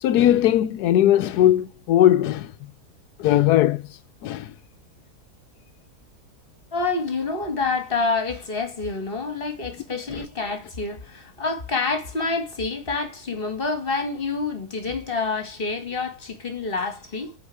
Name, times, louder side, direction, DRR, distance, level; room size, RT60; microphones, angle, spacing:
voice 1, 0.0-2.5 3.2-3.9 4.2-4.5, left 12 dB, 85° left, 1.2 m, -19 dB
voice 2, 6.7-17.4, left 3 dB, 35° left, 2.2 m, -27 dB
9.7 x 4.7 x 4.9 m
omnidirectional pair, 1.7 m